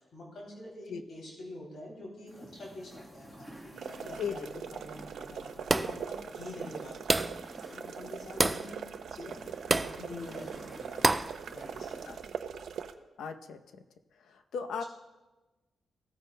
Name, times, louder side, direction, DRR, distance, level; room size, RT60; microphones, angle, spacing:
voice 1, 0.0-8.8 9.1-9.4 9.7-11.1 11.5-12.0, left 1 dB, 60° left, -3 dB, 3.0 m, -46 dB
sound 1, 2.3-12.3, right 1 dB, 5° left, 1.3 m, -51 dB
sound 2, 3.8-12.9, right 7 dB, 75° right, 0.5 m, -42 dB
voice 2, 4.2-4.5 8.4-8.5 12.1-12.2 13.2-13.8 14.3-14.8, left 6 dB, 85° left, 7 dB, 0.7 m, -37 dB
sound 3, 5.7-6.1 7.1-7.5 8.4-8.7 9.7-10.0 11.0-11.4, right 2 dB, 20° right, 0.3 m, -27 dB
16.5 x 9.2 x 2.2 m, 1.1 s
cardioid pair, 110°, 0 cm